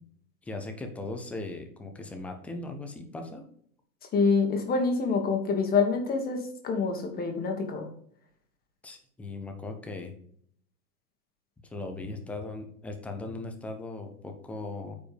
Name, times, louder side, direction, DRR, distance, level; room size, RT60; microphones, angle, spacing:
voice 1, 0.4-3.4 8.8-10.1 11.6-14.9, left 2 dB, 5° left, 5 dB, 0.4 m, -38 dB
voice 2, 4.1-7.9, left 4 dB, 20° left, 3 dB, 1.6 m, -26 dB
9.0 x 5.2 x 5.0 m, 0.63 s
supercardioid pair, 145°, 44 cm